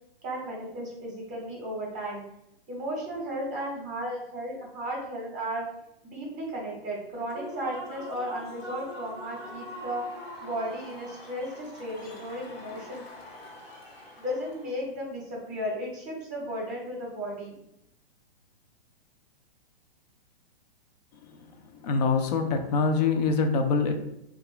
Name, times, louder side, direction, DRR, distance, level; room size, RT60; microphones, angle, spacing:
voice 1, 0.2-2.2 2.7-5.6 6.0-10.0 10.4-13.0 14.2-17.6, equal, 25° right, -2 dB, 0.8 m, -34 dB
Human voice / Cheering / Applause, 7.1-14.8, left 1 dB, 85° left, 1.2 m, -43 dB
voice 2, 21.8-23.9, left 4 dB, 45° left, 6 dB, 0.5 m, -24 dB
3.0 x 2.4 x 3.0 m, 0.81 s
hypercardioid pair, 130°, 30 cm